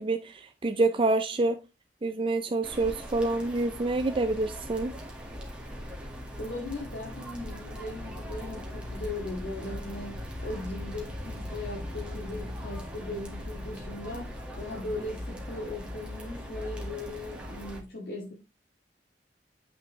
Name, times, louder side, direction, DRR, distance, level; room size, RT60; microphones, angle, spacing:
voice 1, 0.0-1.6 2.0-5.0, right 2 dB, 30° right, 0.5 m, -27 dB
sound 1, 2.6-17.8, equal, 5° right, 1.8 m, -39 dB
voice 2, 6.3-18.3, left 2 dB, 70° left, 2.1 m, -38 dB
8.5 x 6.1 x 3.2 m
head